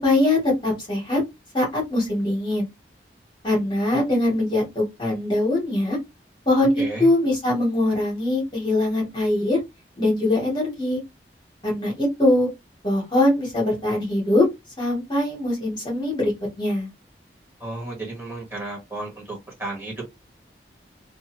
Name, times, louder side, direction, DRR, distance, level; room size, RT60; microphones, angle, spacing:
voice 1, 0.0-1.2 1.5-2.7 3.4-6.0 6.5-9.6 10.0-11.0 11.6-12.5 12.8-14.5 14.8-16.3 16.6-16.9, left 1 dB, 25° left, 1.2 m, -22 dB
voice 2, 17.6-20.0, right 2 dB, 10° right, 1.4 m, -33 dB
2.6 x 2.4 x 3.0 m
head